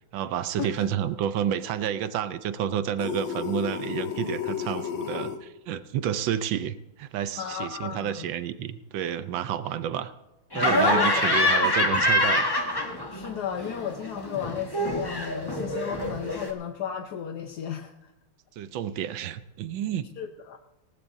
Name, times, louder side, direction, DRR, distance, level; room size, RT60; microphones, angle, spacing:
voice 1, 0.1-10.1 10.5-12.5 18.6-20.1, right 9 dB, 70° right, 12 dB, 1.3 m, -30 dB
sound 1, 3.0-5.4, left 9 dB, 80° left, 2.2 m, -32 dB
voice 2, 7.4-8.3 10.8-11.4 13.1-18.1 20.2-20.6, left 8 dB, 60° left, 5 dB, 1.1 m, -34 dB
Laughter, 10.5-13.3 13.6-16.5, left 1 dB, 15° left, 1.1 m, -25 dB
19.5 x 18.5 x 2.7 m, 0.94 s
omnidirectional pair, 2.4 m